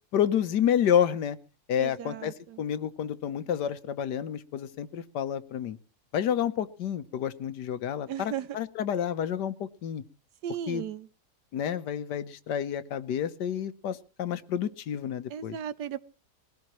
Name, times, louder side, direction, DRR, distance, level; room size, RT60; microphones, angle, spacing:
voice 1, 0.1-1.4 1.7-5.8 6.1-10.0 10.7-10.8 11.5-15.6, left 9 dB, 85° left, 13 dB, 1.6 m, -29 dB
voice 2, 1.8-2.6 8.1-8.6 10.4-11.1 15.3-16.0, right 9 dB, 80° right, 15 dB, 1.5 m, -36 dB
21.0 x 16.5 x 3.1 m, 0.37 s
omnidirectional pair, 1.7 m